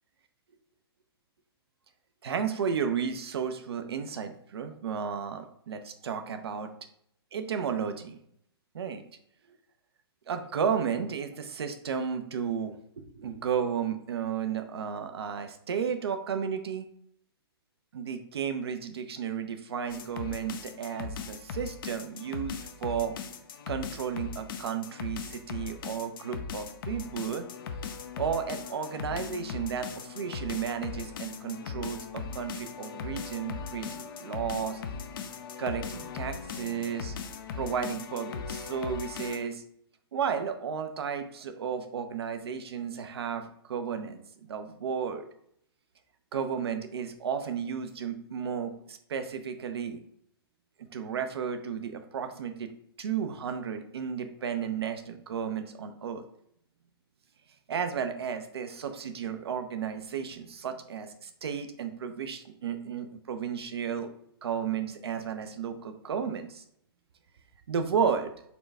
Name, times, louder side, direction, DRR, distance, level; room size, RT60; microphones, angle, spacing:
voice 1, 2.2-6.7 7.3-8.2 8.7-9.0 10.3-12.8 13.1-16.9 17.9-23.2 23.7-27.5 28.2-34.8 35.6-37.2 37.6-39.6 40.1-44.2 44.5-45.3 46.3-50.0 50.9-52.7 53.0-56.2 57.7-64.1 64.4-66.6 67.7-68.3, right 7 dB, 75° right, 8 dB, 0.6 m, -33 dB
sound 1, 19.9-39.4, left 6 dB, 55° left, 0.6 m, -39 dB
4.3 x 2.3 x 4.1 m, 0.70 s
hypercardioid pair, 120°, 13 cm